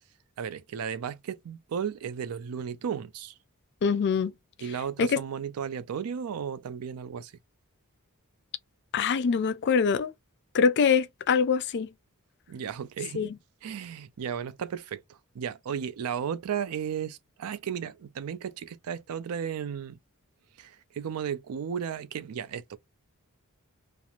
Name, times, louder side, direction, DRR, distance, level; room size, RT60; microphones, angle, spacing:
voice 1, 0.4-3.4 4.6-7.3 12.5-13.2 13.6-20.0 20.6-22.8, right 7 dB, 80° right, 0.4 m, -34 dB
voice 2, 3.8-4.3 5.0-5.2 8.9-10.1 10.5-11.9 13.1-13.3, left 6 dB, 50° left, 0.4 m, -24 dB
2.4 x 2.0 x 2.9 m
head